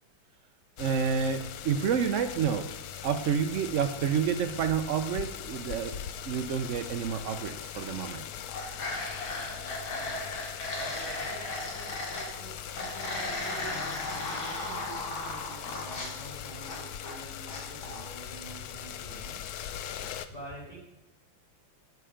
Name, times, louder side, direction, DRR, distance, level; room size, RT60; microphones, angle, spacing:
sound 1, 0.8-20.3, left 9 dB, 70° left, 0.9 m, -41 dB
voice 1, 0.8-2.7 3.0-6.0 6.2-8.2, right 7 dB, 80° right, 7 dB, 0.6 m, -29 dB
sound 2, 7.5-8.1 8.3-12.3 12.8-17.2 17.5-18.0, left 2 dB, 85° left, 2.9 m, -36 dB
voice 2, 9.4-10.2 10.7-19.5 20.3-20.8, right 1 dB, 20° left, -3 dB, 3.7 m, -48 dB
12.5 x 6.7 x 5.0 m, 1.0 s
omnidirectional pair, 2.2 m